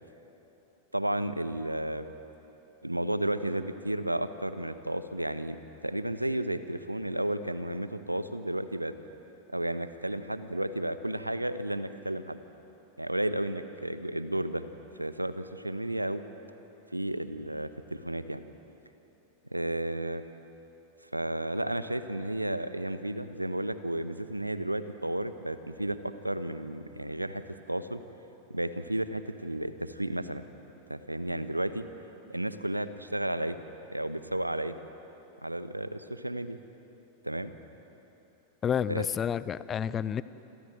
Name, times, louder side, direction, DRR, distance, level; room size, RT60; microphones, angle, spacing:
voice 1, 0.9-2.1 2.8-5.6 5.8-8.9 9.5-12.4 13.0-14.6 15.0-16.2 16.9-18.4 19.5-20.2 21.1-28.0 28.5-30.4 30.9-31.8 32.3-33.6 33.9-34.7 35.4-36.6 37.2-37.5 38.9-39.1, right 1 dB, 85° right, 12 dB, 1.1 m, -32 dB
voice 2, 38.6-40.2, left 8 dB, 25° left, 17 dB, 0.7 m, -30 dB
27.5 x 27.5 x 7.8 m, 3.0 s
figure-of-eight pair, 90°, 0 cm